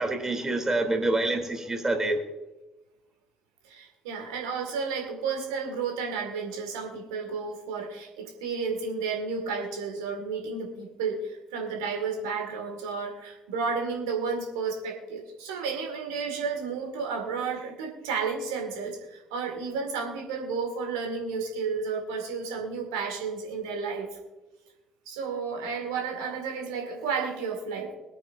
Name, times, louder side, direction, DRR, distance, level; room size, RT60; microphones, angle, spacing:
voice 1, 0.0-2.2, right 2 dB, 20° right, 4 dB, 3.2 m, -26 dB
voice 2, 3.6-24.2 25.1-27.9, right 5 dB, 80° right, 2 dB, 2.0 m, -32 dB
22.0 x 9.1 x 2.7 m, 1.1 s
hypercardioid pair, 50°, 2 cm